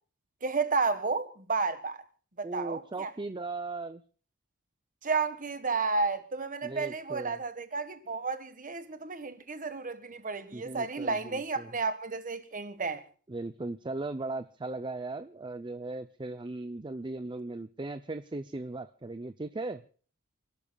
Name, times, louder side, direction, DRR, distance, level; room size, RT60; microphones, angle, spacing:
voice 1, 0.4-2.0 2.4-3.1 5.0-13.0, right 4 dB, 40° right, 1.5 m, -32 dB
voice 2, 2.4-4.0 6.6-7.4 10.5-11.7 13.3-19.8, right 2 dB, 20° right, 0.5 m, -38 dB
29.5 x 12.5 x 2.3 m
head